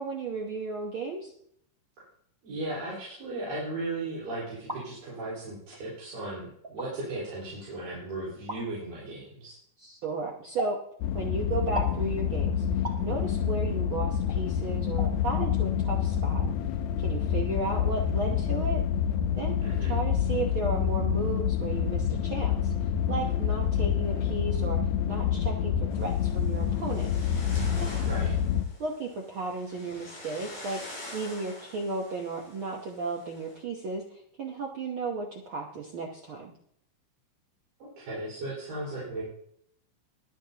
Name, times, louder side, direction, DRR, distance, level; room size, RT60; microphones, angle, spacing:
voice 1, 0.0-1.3 9.8-10.8 11.1-12.6 13.0-16.4 17.0-18.8 19.3-19.5 19.9-22.7 23.1-24.8 25.0-27.1 28.8-30.8 31.1-36.5, right 3 dB, 65° right, 0 dB, 1.2 m, -34 dB
voice 2, 2.4-9.6 19.6-20.0 28.0-28.3 37.8-39.2, right 2 dB, 85° right, -8 dB, 6.3 m, -36 dB
sound 1, 4.4-4.8 5.7-5.8 6.6-6.9 8.5-8.6 10.6-10.8 11.7-12.0 12.8-13.0 14.3-14.4 15.0-15.1 15.4-15.5, equal, 20° right, 0.7 m, -35 dB
sound 2, 11.0-28.6, left 9 dB, 80° left, 1.7 m, -27 dB
sound 3, 25.9-33.6, left 1 dB, 55° left, 7.5 m, -46 dB
22.5 x 8.4 x 2.9 m, 0.69 s
omnidirectional pair, 3.8 m